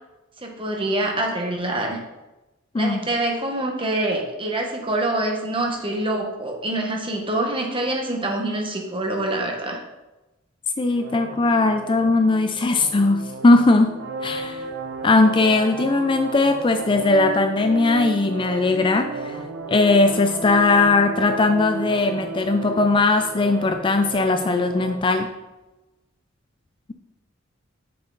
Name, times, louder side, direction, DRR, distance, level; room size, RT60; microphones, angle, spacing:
voice 1, 0.4-2.0 2.7-9.8, right 1 dB, 25° right, 1 dB, 1.3 m, -25 dB
voice 2, 2.7-3.1 10.8-14.0 14.2-14.6 15.0-19.4 19.7-25.3, left 3 dB, 25° left, 6 dB, 0.4 m, -19 dB
sound 1, 10.9-24.9, right 3 dB, 85° right, 0.9 m, -33 dB
7.2 x 6.7 x 4.0 m, 1.0 s
head